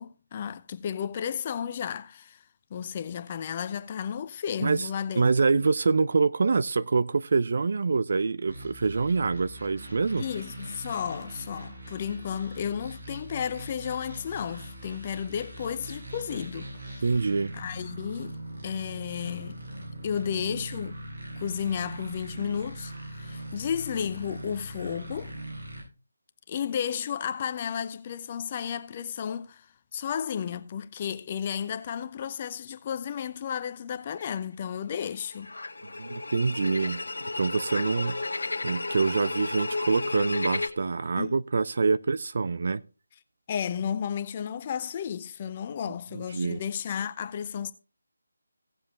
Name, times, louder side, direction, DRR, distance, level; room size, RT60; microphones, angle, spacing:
voice 1, 0.0-2.4 2.7-5.2 5.5-5.6 10.2-17.0 17.5-19.6 20.0-21.0 21.4-25.4 26.5-29.7 29.9-35.5 41.2-41.3 43.5-47.7, left 8 dB, 25° left, 0.7 m, -33 dB
voice 2, 5.2-10.2 17.0-17.5 36.0-37.0 37.4-38.4 38.6-42.8 46.1-46.6, right 4 dB, 45° right, 0.5 m, -25 dB
sound 1, 8.5-25.8, right 1 dB, 70° right, 6.8 m, -41 dB
sound 2, 34.1-34.4 35.1-40.7, left 2 dB, 65° left, 1.7 m, -33 dB
17.0 x 7.3 x 2.9 m
figure-of-eight pair, 155°, 0 cm